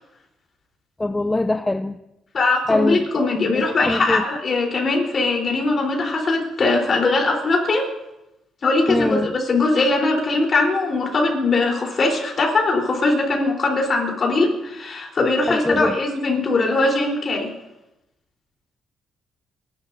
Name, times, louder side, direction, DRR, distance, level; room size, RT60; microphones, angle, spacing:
voice 1, 1.0-2.0 2.7-3.3 3.5-4.2 8.9-9.3 15.5-16.0, left 2 dB, 15° left, 10 dB, 0.5 m, -22 dB
voice 2, 2.3-7.9 8.6-17.5, left 3 dB, 45° left, 0 dB, 3.8 m, -21 dB
28.5 x 11.5 x 2.7 m, 0.91 s
cardioid pair, 90°, 0 cm